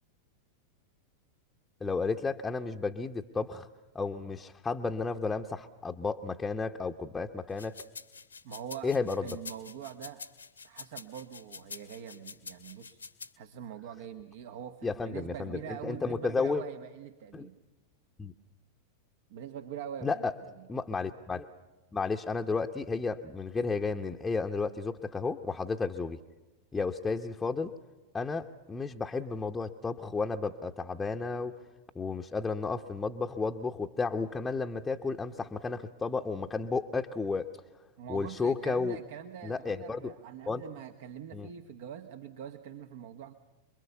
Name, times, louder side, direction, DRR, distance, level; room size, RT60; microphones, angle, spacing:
voice 1, 1.8-3.7 3.9-7.8 8.8-9.2 14.8-16.6 17.3-17.5 18.2-18.3 20.0-20.3 20.7-21.5 21.9-26.2 26.7-27.7 28.1-31.5 31.9-37.5 38.1-39.0 39.4-40.1 40.5-40.6 41.3-41.5, left 4 dB, 10° left, 3 dB, 1.0 m, -32 dB
sound 1, 7.5-13.3, left 5 dB, 75° left, 1.4 m, -46 dB
voice 2, 8.4-8.9 9.2-10.2 10.6-13.0 13.3-17.5 19.3-20.7 38.0-43.3, right 9 dB, 55° right, 7 dB, 1.3 m, -43 dB
28.0 x 22.5 x 6.9 m, 1.2 s
figure-of-eight pair, 90°, 0 cm